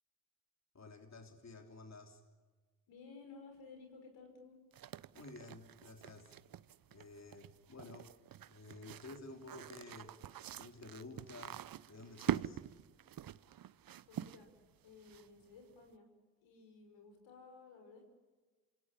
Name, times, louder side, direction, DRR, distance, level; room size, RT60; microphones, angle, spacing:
voice 1, 0.7-2.2 5.1-6.4 6.9-8.1 8.5-10.1 10.6-12.6, left 3 dB, 35° left, 4 dB, 3.3 m, -52 dB
voice 2, 2.9-4.6 14.0-14.5 14.8-16.1 16.4-18.0, left 4 dB, 75° left, 5 dB, 5.9 m, -56 dB
sound 1, 4.7-15.6, right 11 dB, 50° right, 0.9 m, -45 dB
27.0 x 18.5 x 9.9 m, 1.4 s
hypercardioid pair, 45°, 44 cm